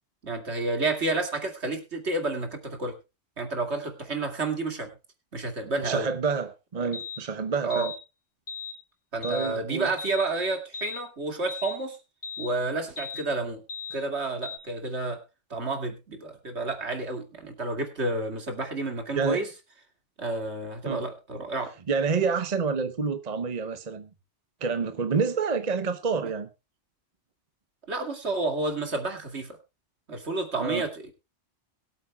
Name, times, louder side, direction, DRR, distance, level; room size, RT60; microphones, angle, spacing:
voice 1, 0.2-3.0 3.4-4.9 5.3-6.1 6.8-6.9 7.6-7.9 9.1-12.0 12.4-13.6 13.9-15.2 15.5-19.5 20.2-21.7 27.9-29.6 30.1-31.1, right 2 dB, 70° right, 2.6 m, -30 dB
voice 2, 5.8-7.9 9.2-9.9 19.1-19.5 20.9-21.0 21.9-24.1 24.6-26.5 30.6-30.8, right 5 dB, 40° right, 1.0 m, -28 dB
sound 1, 6.9-7.2 7.7-8.0 8.5-8.8 9.2-9.5 10.0-10.3 10.7-11.0 11.5-11.8 12.2-12.5 13.0-13.2 13.7-14.0 14.4-14.6, left 6 dB, 40° left, 1.9 m, -37 dB
22.0 x 8.5 x 2.3 m
omnidirectional pair, 1.2 m